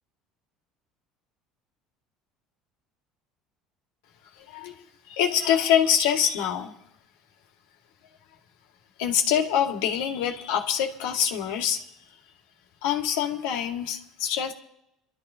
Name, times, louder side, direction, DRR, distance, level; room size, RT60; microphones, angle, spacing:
voice 1, 4.5-6.7 9.0-11.8 12.8-14.5, left 9 dB, 90° left, 2 dB, 2.0 m, -25 dB
28.5 x 12.5 x 2.8 m, 0.80 s
cardioid pair, 125°, 0 cm